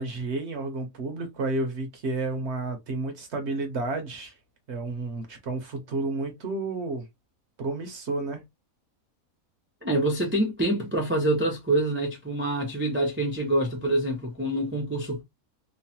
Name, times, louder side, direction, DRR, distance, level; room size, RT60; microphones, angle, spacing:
voice 1, 0.0-4.3 4.7-7.1 7.6-8.4, right 3 dB, 60° right, 0.9 m, -31 dB
voice 2, 9.8-15.2, right 1 dB, 20° right, 0.3 m, -26 dB
3.0 x 2.1 x 2.7 m
omnidirectional pair, 1.5 m